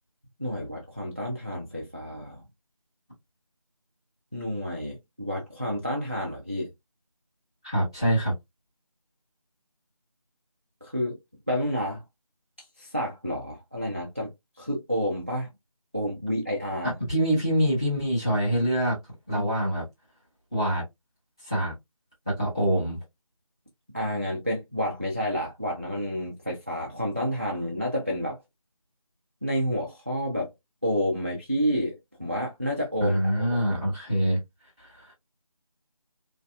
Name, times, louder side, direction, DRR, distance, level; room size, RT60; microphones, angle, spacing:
voice 1, 0.4-2.4 4.3-6.7 10.8-11.2 11.5-12.0 12.8-14.3 14.6-15.5 15.9-16.9 19.3-19.5 23.9-28.4 29.4-30.5 30.8-33.6, equal, 20° right, 0.4 m, -30 dB
voice 2, 7.6-8.3 17.1-19.0 19.3-19.8 20.5-20.8 21.4-21.7 22.3-23.0 33.0-34.4 34.8-35.1, equal, 10° left, 0.9 m, -25 dB
3.1 x 2.7 x 2.3 m
figure-of-eight pair, 170°, 18 cm